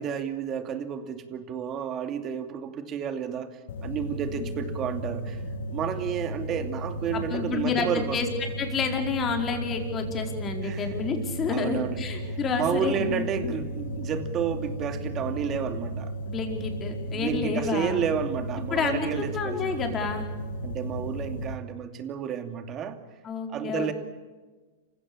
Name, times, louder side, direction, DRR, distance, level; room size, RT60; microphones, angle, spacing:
voice 1, 0.0-5.4 5.7-8.2 10.6-10.9 11.5-16.1 17.1-19.7 20.6-23.0 23.5-23.9, right 8 dB, 35° right, 8 dB, 2.6 m, -31 dB
sound 1, 3.7-21.5, right 1 dB, 70° left, 2.1 m, -34 dB
voice 2, 7.1-8.3 8.6-13.5 16.2-18.1 18.7-20.3 23.2-23.9, left 5 dB, 25° left, 4 dB, 4.7 m, -30 dB
28.5 x 16.0 x 8.7 m, 1.3 s
hypercardioid pair, 115°, 0 cm